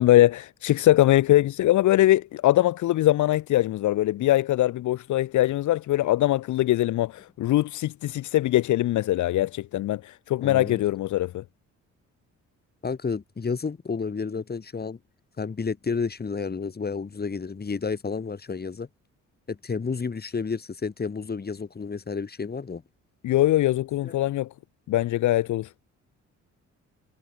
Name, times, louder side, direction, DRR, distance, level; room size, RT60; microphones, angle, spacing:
voice 1, 0.0-11.4 23.2-24.5 24.9-25.7, left 14 dB, 75° left, 1.0 m, -22 dB
voice 2, 10.4-10.8 12.8-15.0 15.4-18.9 19.5-22.8 24.0-24.1, left 5 dB, 30° left, 4.0 m, -31 dB
cardioid pair, 90°, 30 cm